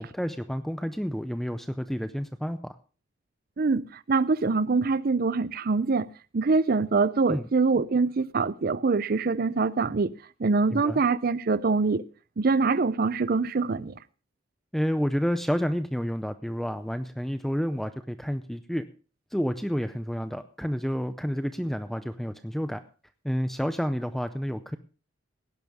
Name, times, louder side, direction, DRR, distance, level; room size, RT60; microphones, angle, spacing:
voice 1, 0.0-2.8 7.3-7.5 10.7-11.0 14.7-18.8 19.3-22.8 23.2-24.8, equal, ahead, 0.5 m, -30 dB
voice 2, 3.6-6.1 6.3-10.1 10.4-12.0 12.4-13.9, right 4 dB, 50° right, 0.5 m, -24 dB
18.0 x 10.5 x 3.5 m
head